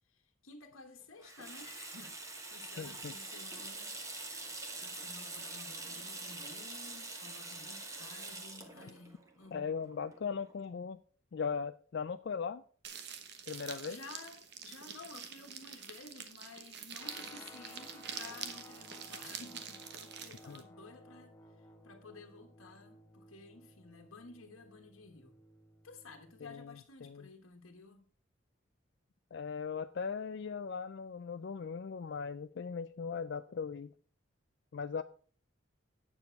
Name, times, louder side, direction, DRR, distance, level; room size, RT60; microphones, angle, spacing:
voice 1, 0.1-9.7 13.6-25.3 25.8-28.1, left 3 dB, 85° left, 1.3 m, -54 dB
Water tap faucet / Sink (filling or washing), 1.2-10.5, right 2 dB, 15° right, 1.1 m, -45 dB
voice 2, 2.8-3.1 9.5-11.0 11.3-12.6 13.5-14.0 20.5-20.6 26.4-26.7 27.0-27.3 29.3-33.9 34.7-35.0, left 6 dB, 55° left, 0.4 m, -38 dB
sound 1, 12.8-20.6, right 7 dB, 55° right, 1.1 m, -46 dB
Guitar, 17.0-26.6, left 1 dB, 15° left, 1.0 m, -56 dB
9.4 x 7.0 x 4.5 m
head